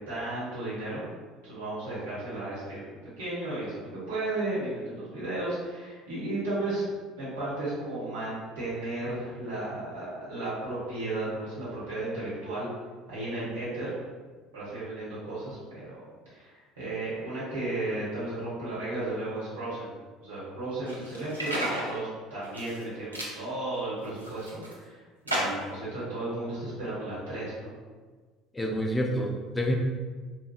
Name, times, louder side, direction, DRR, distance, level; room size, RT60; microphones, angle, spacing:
voice 1, 0.1-1.0 1.4-2.8 3.2-6.8 7.2-12.7 13.1-13.9 14.5-16.0 16.3-19.9 20.2-27.8, right 2 dB, 70° right, -10 dB, 0.8 m, -34 dB
sound 1, 20.9-21.9 22.4-22.8 23.1-23.4 24.0-24.7 25.3-25.8, right 1 dB, 85° right, 0.4 m, -32 dB
voice 2, 28.5-29.7, equal, 15° left, 1 dB, 0.4 m, -28 dB
2.7 x 2.2 x 2.4 m, 1.4 s
figure-of-eight pair, 60°, 0 cm